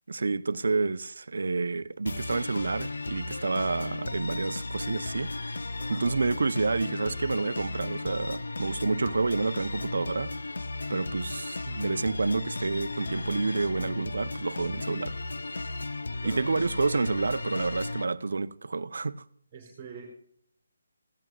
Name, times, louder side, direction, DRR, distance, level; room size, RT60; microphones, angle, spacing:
voice 1, 0.1-5.3 5.9-10.3 10.9-15.2 16.2-19.2, right 3 dB, 70° right, 0.6 m, -29 dB
sound 1, 2.1-18.0, left 2 dB, 85° left, 0.6 m, -35 dB
voice 2, 19.5-20.0, right 6 dB, 15° right, 3.0 m, -44 dB
16.5 x 11.0 x 2.4 m
hypercardioid pair, 175°, 0 cm